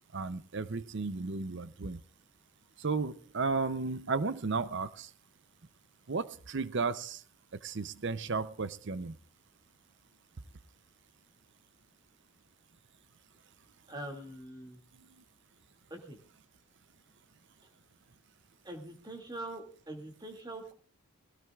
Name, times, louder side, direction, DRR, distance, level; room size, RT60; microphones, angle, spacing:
voice 1, 0.1-2.0 2.8-5.1 6.1-7.2 7.6-9.2, right 4 dB, 50° right, 14 dB, 0.6 m, -34 dB
voice 2, 13.9-14.8 15.9-16.2 18.6-20.7, right 1 dB, 20° right, 2 dB, 2.3 m, -43 dB
22.5 x 17.0 x 2.4 m, 0.42 s
head